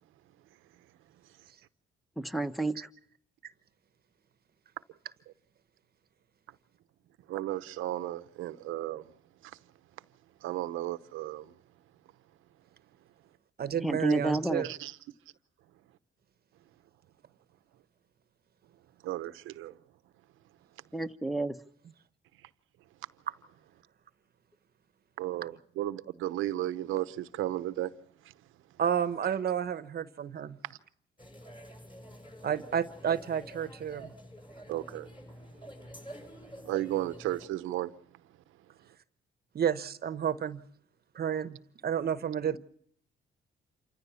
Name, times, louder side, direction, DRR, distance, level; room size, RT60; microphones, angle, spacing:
voice 1, 2.2-2.7 13.8-14.7 20.9-21.6, right 2 dB, ahead, 1.1 m, -29 dB
voice 2, 7.3-9.1 9.4-9.6 10.4-11.5 14.6-14.9 19.0-19.7 25.2-27.9 30.7-30.8 34.7-35.1 36.7-37.9, right 14 dB, 90° right, 0.9 m, -34 dB
voice 3, 13.6-14.7 28.8-30.6 32.4-34.1 39.5-40.6 41.1-42.6, right 8 dB, 50° right, 1.0 m, -31 dB
sound 1, 31.2-37.5, equal, 25° left, 7.5 m, -48 dB
28.0 x 14.5 x 7.0 m
cardioid pair, 90°, 20 cm